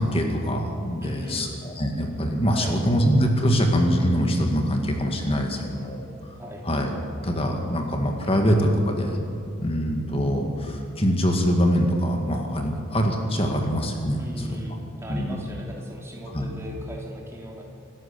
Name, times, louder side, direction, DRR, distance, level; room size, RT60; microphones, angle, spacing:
voice 1, 0.0-6.0 6.6-6.9 7.2-9.2 9.6-14.2 14.5-14.6 15.1-15.4 16.3-16.5, equal, 25° left, 3 dB, 2.0 m, -23 dB
voice 2, 1.0-1.5 2.5-2.8 6.4-6.7 14.2-17.6, equal, 15° right, -2 dB, 3.2 m, -38 dB
26.5 x 14.0 x 7.0 m, 2.6 s
head